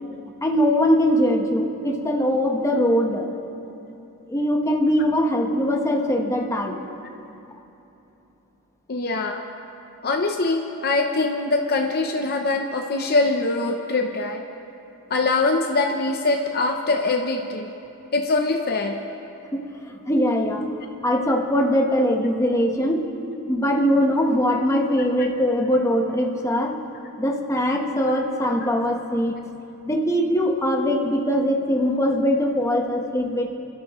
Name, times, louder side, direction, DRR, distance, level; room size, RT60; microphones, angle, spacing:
voice 1, 0.4-3.3 4.3-6.8 19.5-20.7 21.0-23.1 23.5-26.7 27.2-29.4 29.9-33.5, equal, 15° left, 1 dB, 1.2 m, -21 dB
voice 2, 8.9-9.4 10.0-14.4 15.1-17.7 18.1-19.0 25.2-25.3 25.7-25.8 26.2-26.3, left 3 dB, 45° left, 3 dB, 0.7 m, -23 dB
29.5 x 13.0 x 3.1 m, 3.0 s
head